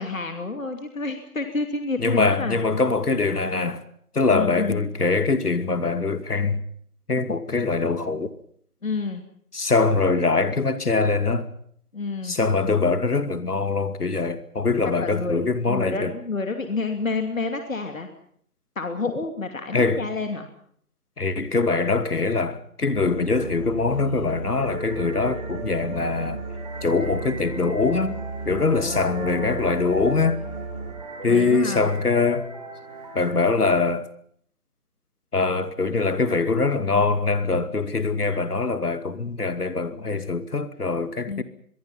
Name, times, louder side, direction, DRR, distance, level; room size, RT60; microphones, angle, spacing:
voice 1, 0.0-2.7 4.3-4.8 8.8-9.2 11.9-12.4 15.0-18.1 18.8-20.5 28.6-29.7 31.3-31.9 41.2-41.4, left 3 dB, 60° left, 2.8 m, -29 dB
voice 2, 2.0-3.8 4.1-6.6 7.1-8.3 9.5-11.5 12.2-16.1 19.7-20.0 21.2-26.4 26.8-28.2 28.5-30.4 31.2-32.5 33.1-34.1 35.3-41.4, left 4 dB, 80° left, 2.6 m, -23 dB
Musical instrument, 22.9-30.9, right 3 dB, 5° left, 5.7 m, -35 dB
sound 1, 24.6-33.3, right 2 dB, 25° right, 4.1 m, -38 dB
25.0 x 22.5 x 5.8 m
figure-of-eight pair, 175°, 45 cm